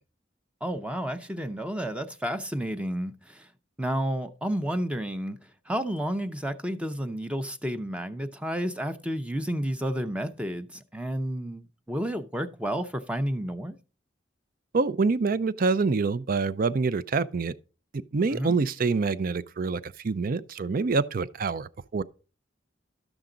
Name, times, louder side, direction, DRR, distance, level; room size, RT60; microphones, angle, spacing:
voice 1, 0.6-3.5 3.8-13.8 18.3-18.5, equal, 5° right, 0.6 m, -31 dB
voice 2, 14.7-17.5 18.1-22.0, right 4 dB, 50° right, 0.5 m, -26 dB
12.0 x 7.1 x 3.8 m
head